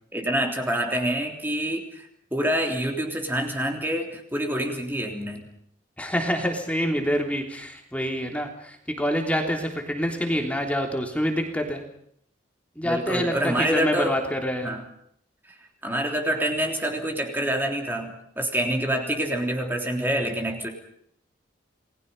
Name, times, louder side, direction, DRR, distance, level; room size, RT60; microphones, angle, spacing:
voice 1, 0.1-5.5 12.8-14.2 14.6-14.8 15.8-20.7, right 1 dB, 10° right, 2 dB, 3.4 m, -27 dB
voice 2, 6.0-11.8 12.7-14.7, equal, 5° left, 3 dB, 3.4 m, -26 dB
30.0 x 20.5 x 5.6 m, 0.67 s
head